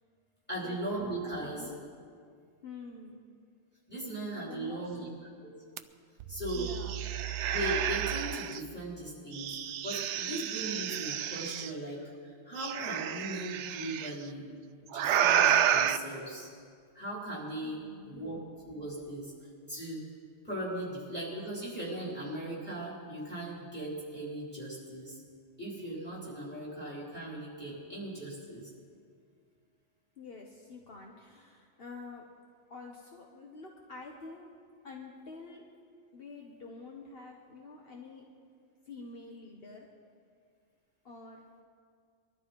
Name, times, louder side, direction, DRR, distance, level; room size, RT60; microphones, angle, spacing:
voice 1, 0.5-1.6 3.9-5.1 5.4-5.5 6.3-6.7 7.5-9.6 9.8-14.4 14.9-16.5 16.9-18.4 18.6-19.3 19.7-20.1 20.4-25.2 25.6-28.7, right 1 dB, 10° left, -6 dB, 4.6 m, -38 dB
voice 2, 1.4-1.8 2.6-3.2 4.4-5.0 6.5-7.0 17.6-18.2 30.2-32.3 32.7-34.6 34.8-35.7 36.1-38.3 38.9-39.9 41.0-41.4, left 4 dB, 60° left, 0 dB, 1.3 m, -47 dB
sound 1, 5.8-5.9 6.2-8.6 9.3-11.7 12.6-14.1 14.9-16.0, right 9 dB, 90° right, 0.9 m, -30 dB
22.0 x 12.5 x 4.6 m, 2.1 s
omnidirectional pair, 1.2 m